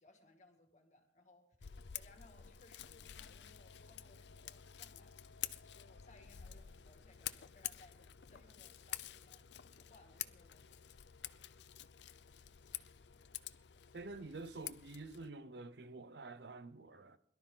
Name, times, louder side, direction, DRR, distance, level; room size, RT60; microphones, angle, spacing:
voice 1, 0.0-5.1 5.6-10.9, left 2 dB, 40° left, 2.0 m, -65 dB
Scissors, 1.6-15.3, left 12 dB, 70° left, 0.6 m, -49 dB
voice 2, 13.9-17.2, right 3 dB, 60° right, 0.7 m, -48 dB
22.0 x 12.0 x 3.9 m
head